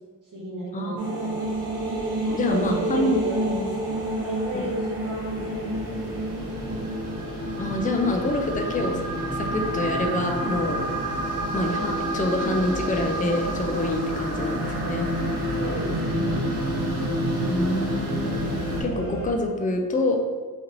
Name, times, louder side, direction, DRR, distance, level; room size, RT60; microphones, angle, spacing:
voice 1, 0.3-1.5 2.2-2.6 2.9-6.1 15.6-16.5, equal, 55° right, -6 dB, 1.3 m, -34 dB
sound 1, 1.0-18.8, right 1 dB, 90° right, 1.0 m, -29 dB
sound 2, 1.4-19.3, equal, 60° left, 0.8 m, -36 dB
voice 2, 2.3-3.2 4.5-4.7 7.6-10.8 11.5-15.1 17.4-18.4 18.8-20.2, left 2 dB, 20° left, 3 dB, 0.3 m, -26 dB
4.2 x 3.0 x 2.5 m, 1.5 s
wide cardioid pair, 135°, 38 cm